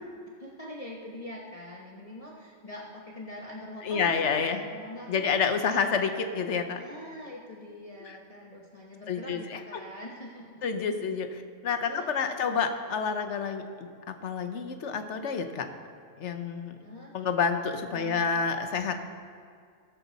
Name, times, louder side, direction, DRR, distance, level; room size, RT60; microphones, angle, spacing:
voice 1, 0.4-5.3 5.6-6.2 6.8-10.6 11.9-12.7 16.8-17.3 17.9-18.4, left 1 dB, 30° left, -3 dB, 1.1 m, -44 dB
voice 2, 3.8-4.6 5.1-6.8 9.1-9.6 10.6-15.7 16.2-16.8 17.1-19.1, left 6 dB, 70° left, 7 dB, 1.2 m, -29 dB
18.5 x 7.3 x 4.1 m, 2.2 s
omnidirectional pair, 1.3 m